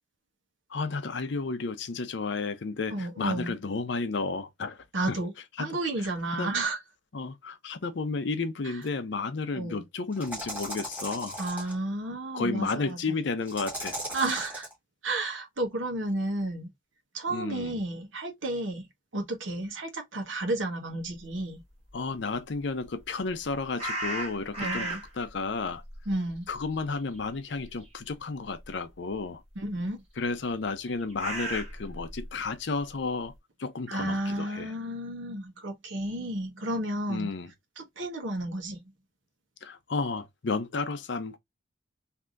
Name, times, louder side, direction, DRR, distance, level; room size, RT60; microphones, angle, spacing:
voice 1, 0.7-5.2 5.6-5.8 6.4-6.5 7.1-11.4 12.3-14.0 17.3-17.8 21.9-25.8 26.5-29.4 30.2-33.3 33.6-34.7 37.1-37.5 39.6-41.4, left 4 dB, 65° left, 0.6 m, -32 dB
voice 2, 2.9-3.5 4.9-5.3 5.6-6.8 8.6-8.8 9.5-9.8 11.4-13.1 14.1-14.7 15.0-16.7 17.1-18.9 19.1-21.6 24.6-25.0 26.1-26.5 29.6-30.0 33.9-37.3 37.8-38.8, right 2 dB, 80° right, 1.1 m, -32 dB
sound 1, 8.8-8.9 10.1-11.7 13.5-14.7, right 1 dB, 10° right, 1.5 m, -37 dB
sound 2, 23.8-25.3 25.7-27.4 27.6-27.8 28.6-28.7 30.5-32.3, right 1 dB, 30° right, 1.5 m, -35 dB
3.4 x 2.7 x 2.4 m
head